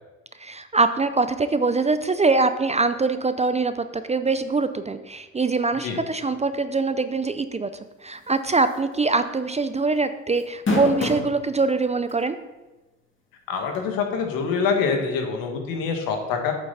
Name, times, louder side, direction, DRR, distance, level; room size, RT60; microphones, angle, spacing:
voice 1, 0.4-7.7 8.0-12.4, right 3 dB, 20° right, 11 dB, 0.6 m, -23 dB
sound 1, 8.7-8.9 9.3-9.4 10.4-11.3 12.1-12.2 13.7-13.8, left 1 dB, 35° left, 2.8 m, -24 dB
voice 2, 13.5-16.5, left 5 dB, 65° left, 3 dB, 2.0 m, -25 dB
8.5 x 7.7 x 4.2 m, 1.1 s
hypercardioid pair, 65°, 36 cm